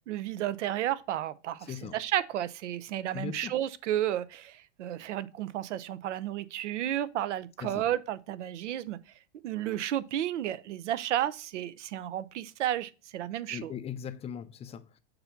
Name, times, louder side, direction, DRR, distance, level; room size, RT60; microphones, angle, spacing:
voice 1, 0.1-9.0 9.4-13.7, right 12 dB, 85° right, 0.6 m, -32 dB
voice 2, 1.6-2.0 3.1-3.6 7.6-7.9 13.5-15.0, left 8 dB, 20° left, 0.4 m, -39 dB
6.8 x 2.7 x 5.6 m
hypercardioid pair, 110°, 35 cm